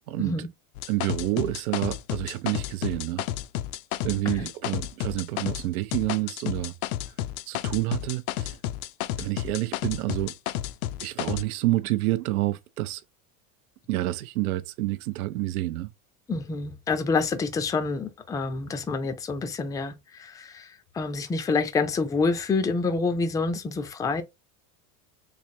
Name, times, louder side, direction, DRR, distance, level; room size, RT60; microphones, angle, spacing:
voice 1, 0.1-0.5 0.9-3.2 4.0-6.7 7.1-7.2 7.5-8.6 9.2-10.3 11.0-13.0 13.9-15.9, right 17 dB, 90° right, 0.5 m, -28 dB
sound 1, 0.7-5.7 5.9-11.4, left 13 dB, 80° left, 0.5 m, -31 dB
voice 2, 16.3-20.7 21.0-24.2, left 4 dB, 10° left, 0.4 m, -27 dB
3.2 x 3.2 x 2.6 m
supercardioid pair, 110°, 42 cm